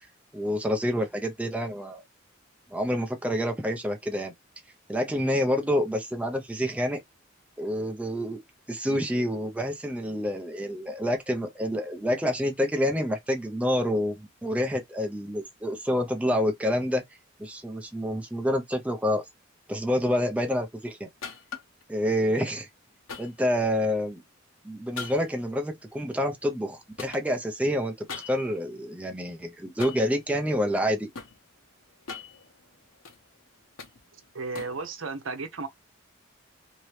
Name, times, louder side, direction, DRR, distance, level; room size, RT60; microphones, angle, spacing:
voice 1, 0.3-2.0 2.7-4.3 4.9-7.0 7.6-8.4 8.7-17.0 17.4-19.2 19.7-21.1 21.9-22.7 23.2-24.2 24.6-31.1, equal, 5° right, 0.5 m, -28 dB
sound 1, 21.2-21.8 23.1-24.1 24.9-26.7 27.0-28.6 29.8-30.2 30.7-31.4 31.9-33.2 33.5-34.9, left 5 dB, 80° left, 1.0 m, -41 dB
voice 2, 34.3-35.7, right 4 dB, 75° right, 0.8 m, -34 dB
3.0 x 2.8 x 3.1 m
head